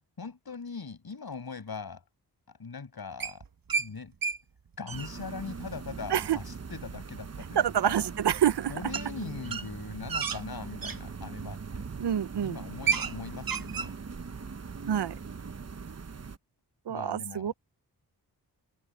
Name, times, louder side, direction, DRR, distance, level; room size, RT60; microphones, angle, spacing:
voice 1, 0.0-2.0 2.6-3.4 3.8-4.1 4.8-8.1 8.7-11.8 12.4-14.0 16.9-17.5, left 5 dB, 65° left, 6.7 m, -41 dB
sound 1, 3.2-3.9 4.2-4.4 4.7-5.1 7.3-7.4 8.9-9.1 9.4-11.0 11.7-11.9 12.3-12.4 12.6-13.1 13.4-13.9, right 6 dB, 55° right, 1.2 m, -31 dB
sound 2, 4.9-16.4, right 5 dB, 40° right, 1.0 m, -41 dB
voice 2, 7.6-8.7 12.0-12.6 14.9-15.1 16.9-17.5, right 9 dB, 80° right, 0.7 m, -27 dB
cardioid pair, 55°, 40 cm